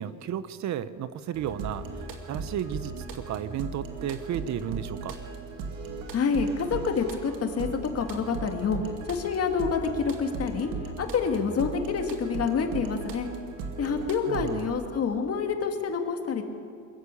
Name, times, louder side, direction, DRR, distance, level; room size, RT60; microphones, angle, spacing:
voice 1, 0.0-5.2 14.3-14.6, right 10 dB, 55° right, 14 dB, 0.9 m, -33 dB
sound 1, 1.3-14.7, right 4 dB, 85° right, 2.5 m, -38 dB
voice 2, 6.1-8.8 9.1-10.7 11.0-13.3 13.8-16.4, left 5 dB, 45° left, 4 dB, 2.4 m, -27 dB
23.0 x 14.0 x 8.5 m, 2.4 s
cardioid pair, 115°, 33 cm